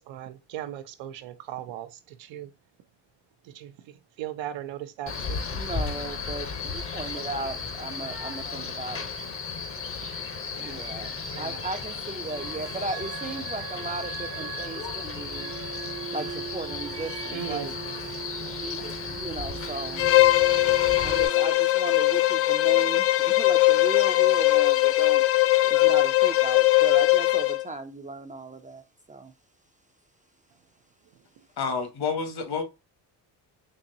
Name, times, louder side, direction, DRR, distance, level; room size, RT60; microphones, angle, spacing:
voice 1, 0.0-2.5 3.4-5.5 10.5-10.9 11.3-11.6 17.3-17.7, right 11 dB, 90° right, 0.6 m, -38 dB
Male speech man speaking, 5.1-21.3, left 5 dB, 30° left, 0.6 m, -35 dB
voice 2, 5.5-9.1 10.6-15.5 16.1-17.7 18.6-20.0 21.0-25.2 25.7-29.3, right 3 dB, 20° right, 0.3 m, -36 dB
sound 1, 12.3-21.5, right 9 dB, 60° right, 0.9 m, -40 dB
Bowed string instrument, 20.0-27.6, left 18 dB, 85° left, 0.5 m, -20 dB
voice 3, 31.6-32.6, left 5 dB, 60° left, 1.1 m, -29 dB
4.0 x 3.0 x 2.6 m
cardioid pair, 100°, 44 cm